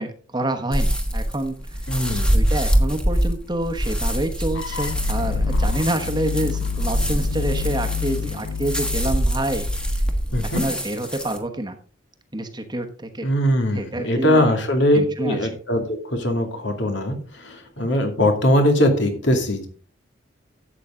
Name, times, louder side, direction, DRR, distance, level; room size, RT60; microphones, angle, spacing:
voice 1, 0.0-1.9 2.3-10.0 10.5-11.8 12.3-13.3 13.7-14.5 14.9-15.5, right 1 dB, 20° right, 5 dB, 1.1 m, -27 dB
sound 1, 0.7-11.4, equal, 5° left, 1.3 m, -24 dB
voice 2, 1.9-2.4 10.3-10.6 13.2-19.7, left 1 dB, 65° left, 4 dB, 2.4 m, -21 dB
sound 2, 4.5-10.4, left 6 dB, 80° left, 0.5 m, -29 dB
12.5 x 8.1 x 3.7 m, 0.41 s
head